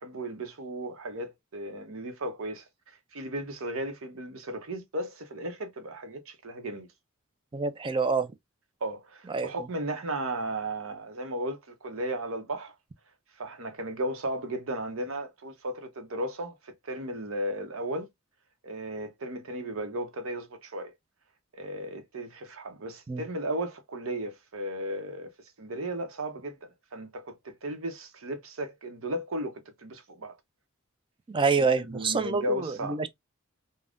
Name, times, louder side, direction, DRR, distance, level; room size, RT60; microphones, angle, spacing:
voice 1, 0.0-2.6 3.1-6.9 8.8-12.7 13.4-18.1 18.6-20.9 21.5-25.3 25.6-30.3 31.6-33.0, right 1 dB, 70° right, 0.8 m, -35 dB
voice 2, 7.5-8.3 9.3-9.5 23.1-23.2 31.3-33.1, right 4 dB, 25° right, 0.4 m, -27 dB
3.4 x 2.2 x 2.4 m
head